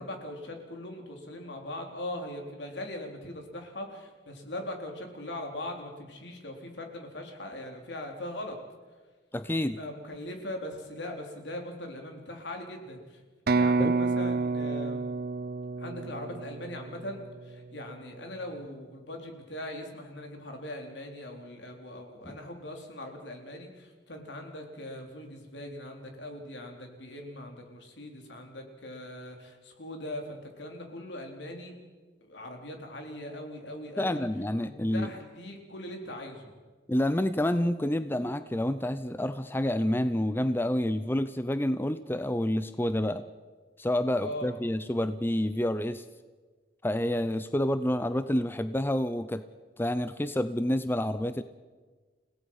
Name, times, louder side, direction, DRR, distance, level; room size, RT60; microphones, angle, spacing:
voice 1, 0.0-8.6 9.8-13.2 13.5-15.1 15.8-31.8 32.3-34.3 34.6-36.5 44.2-44.6, left 1 dB, 75° left, 3 dB, 3.7 m, -40 dB
voice 2, 9.3-9.8 13.8-13.9 22.3-22.4 34.0-35.1 36.9-43.2 43.8-46.0 46.8-49.4 49.8-51.4, left 1 dB, 10° left, 12 dB, 0.6 m, -28 dB
sound 1, 13.5-17.2, right 3 dB, 55° right, 0.6 m, -29 dB
29.5 x 17.5 x 5.6 m, 1.4 s
head